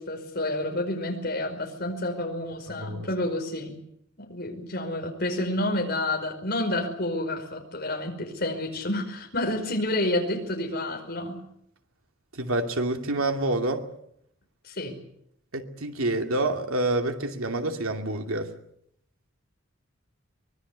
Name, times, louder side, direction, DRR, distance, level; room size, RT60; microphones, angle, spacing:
voice 1, 0.0-3.8 4.2-11.4 14.6-15.0, left 1 dB, 50° left, 5.2 m, -29 dB
voice 2, 2.7-3.1 12.3-13.9 15.5-18.5, right 2 dB, 90° right, 2.6 m, -27 dB
24.0 x 21.0 x 8.3 m
head